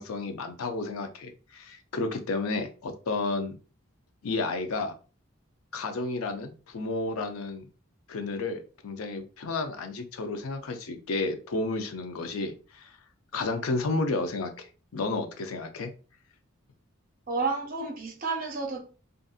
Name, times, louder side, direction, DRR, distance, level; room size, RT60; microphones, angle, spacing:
voice 1, 0.0-3.6 4.2-4.9 5.7-7.7 8.1-12.9 13.3-14.7 14.9-15.9, left 3 dB, 85° left, 0.5 m, -32 dB
voice 2, 17.3-18.8, right 4 dB, 40° right, 0.7 m, -30 dB
2.5 x 2.5 x 2.4 m
head